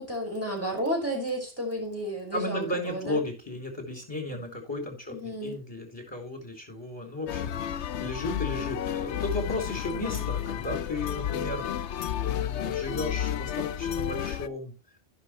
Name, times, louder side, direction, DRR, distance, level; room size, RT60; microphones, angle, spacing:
voice 1, 0.0-3.2 5.1-5.6 9.9-10.3, equal, 10° right, -1 dB, 5.0 m, -32 dB
voice 2, 2.3-14.7, left 2 dB, 20° left, 2 dB, 4.0 m, -35 dB
sound 1, 7.3-14.5, left 10 dB, 90° left, 0.9 m, -31 dB
16.0 x 6.1 x 3.1 m, 0.30 s
omnidirectional pair, 1.1 m